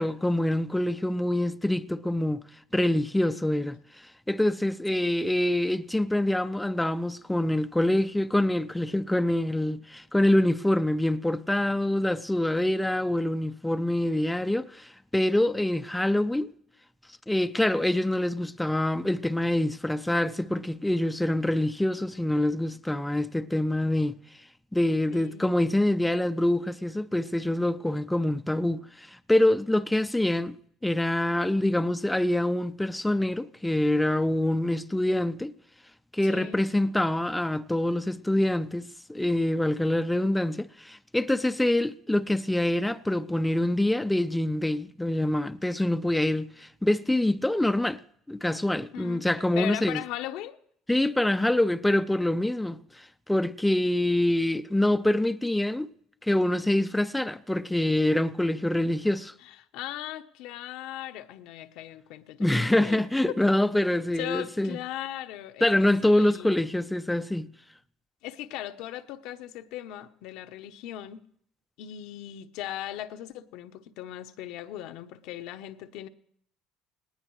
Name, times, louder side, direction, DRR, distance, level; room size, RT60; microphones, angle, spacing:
voice 1, 0.0-2.4 2.7-16.5 17.3-24.2 24.7-30.6 30.8-35.5 36.1-48.0 48.3-50.0 50.9-55.9 56.2-59.3 62.4-64.8 65.6-67.5, left 1 dB, 5° left, 0.5 m, -25 dB
voice 2, 3.3-3.7 4.9-5.3 25.1-25.6 36.2-36.6 48.9-49.2 49.6-50.6 59.4-63.3 64.2-66.5 68.2-71.2 71.8-76.1, left 13 dB, 75° left, 0.9 m, -38 dB
19.0 x 18.5 x 3.2 m
cardioid pair, 120°, 0 cm